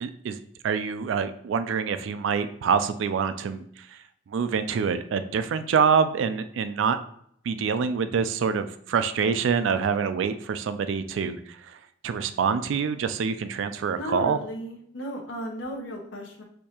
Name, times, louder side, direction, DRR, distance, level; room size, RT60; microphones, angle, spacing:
voice 1, 0.0-4.0 4.3-7.0 7.5-11.8 12.0-14.4, right 6 dB, 80° right, 11 dB, 0.3 m, -26 dB
voice 2, 13.9-16.4, left 1 dB, 85° left, 1 dB, 1.0 m, -35 dB
6.5 x 2.7 x 2.8 m, 0.67 s
head